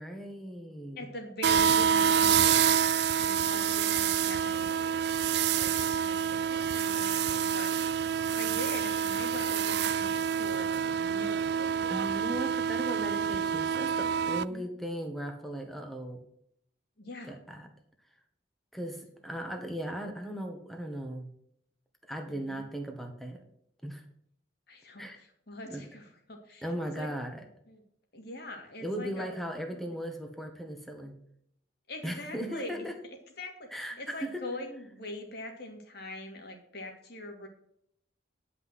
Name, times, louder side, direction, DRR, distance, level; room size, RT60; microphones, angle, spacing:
voice 1, 0.0-1.1 11.9-16.2 17.2-17.7 18.7-21.3 22.1-23.4 23.8-24.0 25.0-25.2 25.7-25.8 26.6-27.4 28.8-31.2 32.0-32.9 33.7-34.4, equal, ahead, 3 dB, 1.7 m, -37 dB
voice 2, 1.0-2.7 3.2-4.9 5.4-7.7 8.3-11.8 14.5-14.7 17.0-17.4 22.3-22.6 24.7-27.1 27.7-27.8 28.1-29.3 29.7-29.8 31.9-32.9 33.4-33.7 34.0-37.5, left 1 dB, 55° left, 3 dB, 2.5 m, -43 dB
sound 1, 1.4-14.4, right 8 dB, 60° right, 0.4 m, -27 dB
10.5 x 5.9 x 6.4 m, 0.71 s
head